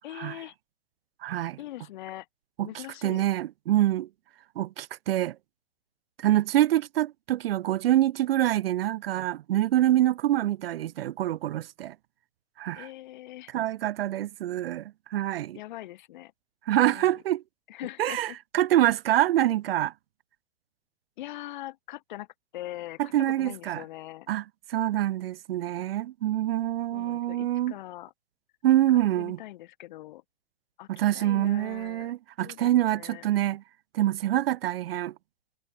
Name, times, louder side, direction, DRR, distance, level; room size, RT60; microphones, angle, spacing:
voice 1, 0.0-0.5 1.6-2.3 2.6-3.2 12.7-13.5 15.5-16.3 16.8-17.2 17.7-18.4 21.2-22.3 22.5-24.3 26.9-28.1 28.9-30.2 30.8-32.1 32.4-33.3, left 15 dB, 50° left, 2.8 m, -42 dB
voice 2, 1.2-1.6 2.6-2.7 3.0-4.1 4.6-5.4 6.2-12.0 12.6-12.9 13.5-15.6 16.7-17.4 18.0-19.9 23.1-23.8 24.3-24.4 24.7-27.7 28.6-29.4 30.9-33.6 33.9-35.1, right 13 dB, 65° right, 0.5 m, -25 dB
hypercardioid pair, 155°, 32 cm